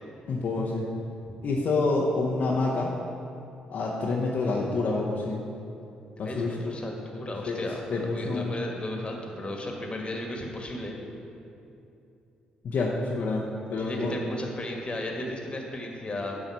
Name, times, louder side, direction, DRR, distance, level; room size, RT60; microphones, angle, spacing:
voice 1, 0.3-0.9 1.4-2.9 3.7-5.4 6.2-6.6 7.5-7.6 7.9-8.5 12.6-14.2, left 3 dB, 50° left, -3 dB, 0.8 m, -27 dB
voice 2, 6.2-11.0 13.8-16.4, left 1 dB, 30° left, 1 dB, 1.4 m, -35 dB
11.0 x 3.8 x 5.7 m, 2.7 s
figure-of-eight pair, 40°, 4 cm